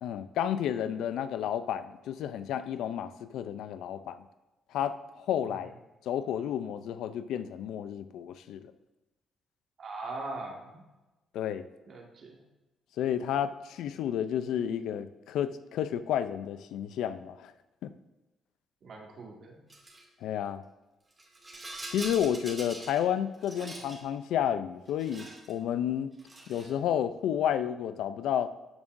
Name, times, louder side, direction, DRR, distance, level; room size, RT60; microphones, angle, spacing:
voice 1, 0.0-4.2 4.7-5.7 6.1-8.7 11.3-11.7 13.0-17.5 17.8-17.9 20.2-20.6 21.9-26.1 26.5-28.5, left 9 dB, 85° left, 12 dB, 0.5 m, -31 dB
voice 2, 9.8-10.8 11.9-12.4 18.8-19.6, right 2 dB, 60° right, -1 dB, 1.9 m, -41 dB
Rattle, 19.7-20.0 21.1-23.0 23.3-24.0 24.9-25.5 26.1-26.8, right 2 dB, 25° right, 2.3 m, -43 dB
12.5 x 7.3 x 2.6 m, 1.1 s
cardioid pair, 90°, 0 cm